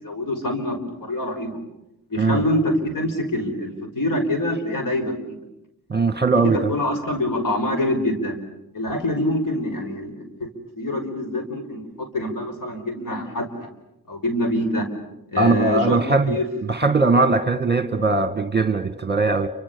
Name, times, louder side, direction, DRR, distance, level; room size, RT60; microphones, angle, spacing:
voice 1, 0.0-1.6 2.1-5.4 6.4-8.4 8.7-10.2 10.8-13.7 14.1-14.9 15.3-16.0 16.3-16.4, left 1 dB, 50° left, 7 dB, 5.5 m, -25 dB
voice 2, 5.9-6.6 15.4-16.4 16.7-19.5, right 3 dB, 25° right, 10 dB, 1.9 m, -20 dB
29.0 x 25.0 x 7.1 m, 0.87 s
supercardioid pair, 50°, 41 cm